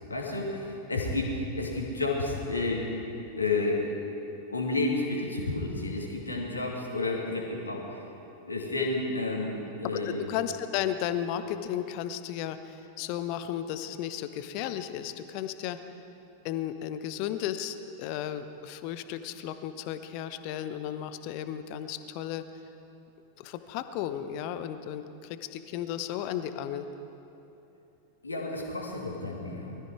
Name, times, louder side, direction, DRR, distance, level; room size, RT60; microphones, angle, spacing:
voice 1, 0.0-3.0 3.4-3.9 4.5-8.0 8.4-10.2 28.2-29.7, left 2 dB, 80° left, -1 dB, 2.3 m, -31 dB
voice 2, 9.9-15.8 16.4-22.4 23.4-26.9, left 10 dB, 45° left, 11 dB, 0.8 m, -34 dB
20.5 x 13.5 x 4.7 m, 2.9 s
figure-of-eight pair, 90°, 0 cm